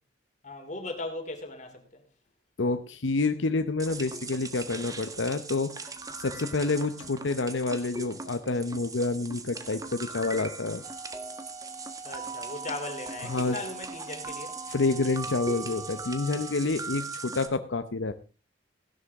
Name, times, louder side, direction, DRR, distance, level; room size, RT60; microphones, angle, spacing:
voice 1, 0.4-2.0 12.0-14.5, left 2 dB, 40° left, 3.0 m, -38 dB
voice 2, 2.6-5.9 6.2-10.8 13.2-13.6 14.7-18.1, left 3 dB, 75° left, 0.8 m, -28 dB
sound 1, 3.8-17.5, right 3 dB, 20° right, 1.4 m, -39 dB
sound 2, 10.8-16.7, right 4 dB, 35° right, 4.1 m, -45 dB
16.5 x 11.5 x 3.6 m
head